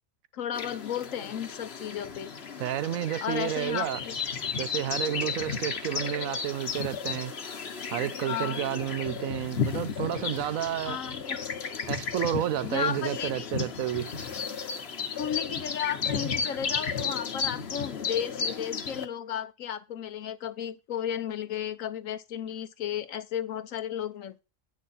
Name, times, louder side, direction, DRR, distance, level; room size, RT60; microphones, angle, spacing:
voice 1, 0.3-2.3 3.2-4.1 8.2-8.6 10.8-11.4 12.6-13.5 15.1-24.4, left 9 dB, 80° left, 1.3 m, -34 dB
sound 1, 0.5-19.1, left 6 dB, 55° left, 1.2 m, -34 dB
voice 2, 2.6-4.0 4.6-7.3 7.9-11.0 11.9-14.1, right 12 dB, 85° right, 1.1 m, -31 dB
8.9 x 6.2 x 4.2 m
omnidirectional pair, 1.4 m